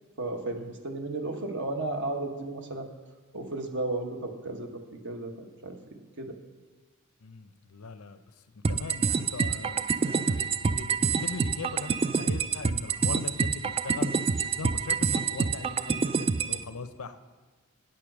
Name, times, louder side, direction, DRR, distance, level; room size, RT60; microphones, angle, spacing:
voice 1, 0.2-2.9 3.3-5.8 6.2-6.4, right 2 dB, 60° right, 4 dB, 1.3 m, -34 dB
voice 2, 7.2-14.1 14.4-17.2, left 4 dB, 85° left, 10 dB, 0.7 m, -40 dB
sound 1, 8.6-16.6, right 5 dB, 25° right, 0.3 m, -27 dB
9.2 x 8.6 x 6.2 m, 1.4 s
head